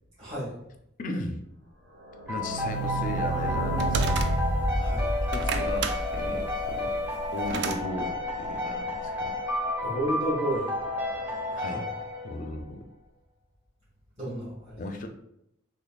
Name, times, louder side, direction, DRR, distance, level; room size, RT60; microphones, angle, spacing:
voice 1, 0.2-0.5 4.7-5.1 9.8-10.7 11.5-11.8 14.2-14.9, right 1 dB, 35° right, -12 dB, 1.5 m, -32 dB
voice 2, 1.0-1.4 2.3-4.3 5.3-7.0 7.3-9.4 11.6-11.9 12.2-12.9 14.8-15.1, left 2 dB, 45° left, 6 dB, 0.4 m, -36 dB
sound 1, 1.9-7.5 7.8-7.9 8.1-8.2 8.4-8.5, right 2 dB, 80° right, 0.8 m, -30 dB
sound 2, 2.3-12.7, left 2 dB, 10° right, 0.8 m, -31 dB
sound 3, 3.0-4.7 5.2-7.8, right 4 dB, 60° right, 0.3 m, -32 dB
4.1 x 3.1 x 2.3 m, 0.79 s
head